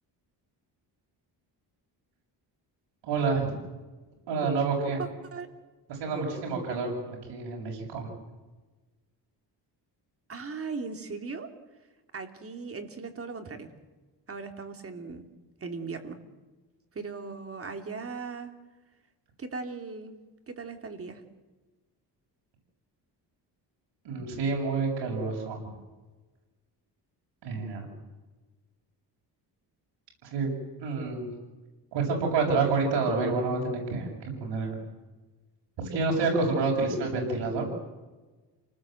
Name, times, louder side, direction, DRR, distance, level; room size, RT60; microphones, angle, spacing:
voice 1, 3.0-3.5 4.3-5.0 5.9-8.1 24.0-25.6 27.4-27.9 30.2-30.5 30.8-31.3 31.9-34.8 35.9-37.6, right 4 dB, 90° right, 0 dB, 7.4 m, -28 dB
voice 2, 5.0-5.5 10.3-11.5 12.1-13.7 14.3-15.2 15.6-16.2 16.9-18.5 19.4-20.1 20.5-21.2, right 4 dB, 35° right, 5 dB, 3.1 m, -38 dB
29.0 x 19.5 x 7.9 m, 1.2 s
cardioid pair, 135°, 41 cm